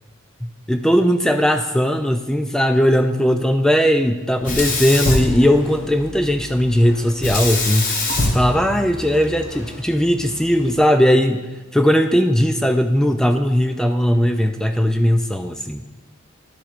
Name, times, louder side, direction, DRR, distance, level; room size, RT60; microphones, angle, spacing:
voice 1, 0.7-7.9 8.3-11.5 11.7-15.8, equal, 5° left, 6 dB, 0.3 m, -18 dB
Sink (filling or washing), 4.4-6.1 7.2-9.5, left 2 dB, 40° left, 0.9 m, -23 dB
sound 1, 5.4-10.8, left 1 dB, 70° left, 1.6 m, -38 dB
11.5 x 7.2 x 2.5 m, 1.2 s
head